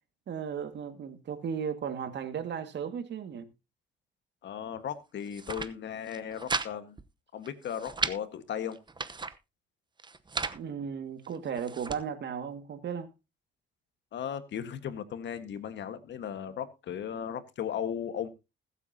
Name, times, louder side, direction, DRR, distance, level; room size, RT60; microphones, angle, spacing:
voice 1, 0.3-3.5 10.5-13.1, right 7 dB, 60° right, 1.9 m, -35 dB
voice 2, 4.4-7.0 7.3-8.8 14.1-18.3, left 8 dB, 65° left, 1.5 m, -36 dB
sound 1, 5.2-5.7 6.1-6.7 7.0-7.1 7.4-8.2 8.7-9.3 10.0-10.6 11.2-12.0, right 4 dB, 20° right, 0.9 m, -35 dB
20.0 x 8.3 x 2.8 m
cardioid pair, 90°, 20 cm